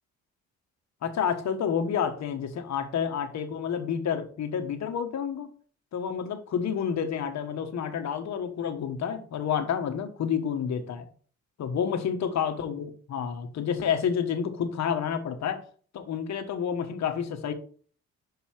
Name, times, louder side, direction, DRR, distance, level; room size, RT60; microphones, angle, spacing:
voice 1, 1.0-5.5 5.9-11.0 11.6-15.6 15.9-17.5, left 7 dB, 65° left, 7 dB, 1.3 m, -29 dB
5.8 x 5.4 x 4.5 m, 0.43 s
cardioid pair, 90°, 30 cm